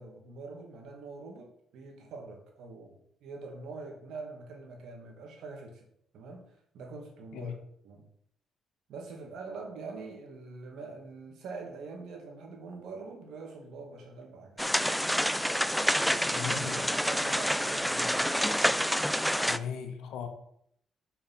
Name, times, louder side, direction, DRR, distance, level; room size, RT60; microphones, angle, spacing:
voice 1, 0.0-5.9 6.1-7.6 7.8-8.1 8.9-14.6 16.0-18.4, right 3 dB, 80° right, 2.2 m, -44 dB
sound 1, 14.6-19.6, equal, ahead, 0.4 m, -28 dB
voice 2, 16.3-16.8 19.5-20.3, left 7 dB, 85° left, 1.2 m, -37 dB
5.7 x 5.7 x 5.9 m
cardioid pair, 90°, 0 cm